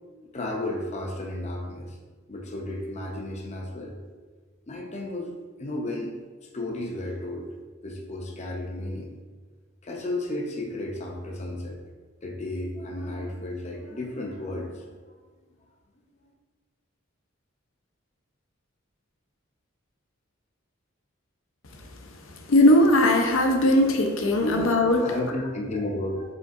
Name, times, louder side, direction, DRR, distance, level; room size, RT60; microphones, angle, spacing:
voice 1, 0.3-2.0 2.3-4.0 4.7-5.3 5.6-6.2 6.5-7.5 7.8-9.1 9.8-11.8 12.2-15.0 24.4-26.2, left 1 dB, 35° left, 0 dB, 0.6 m, -33 dB
voice 2, 22.5-25.0, left 1 dB, 75° left, 3 dB, 0.6 m, -19 dB
5.0 x 3.7 x 2.5 m, 1.4 s
head